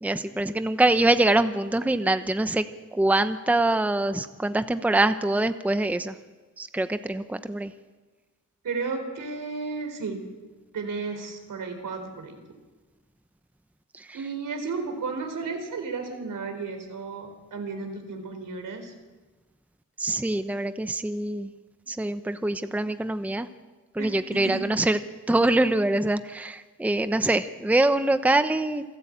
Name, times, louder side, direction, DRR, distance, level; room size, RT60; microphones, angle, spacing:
voice 1, 0.0-2.7 2.9-6.1 6.6-7.7 13.9-14.2 20.0-21.5 21.9-23.5 23.9-25.0 25.3-28.8, right 2 dB, 5° right, 10 dB, 0.8 m, -24 dB
voice 2, 8.6-10.2 10.7-12.4 14.1-18.9 24.0-24.6, right 4 dB, 80° right, 6 dB, 3.9 m, -33 dB
27.5 x 12.5 x 8.7 m, 1.3 s
wide cardioid pair, 100°, 31 cm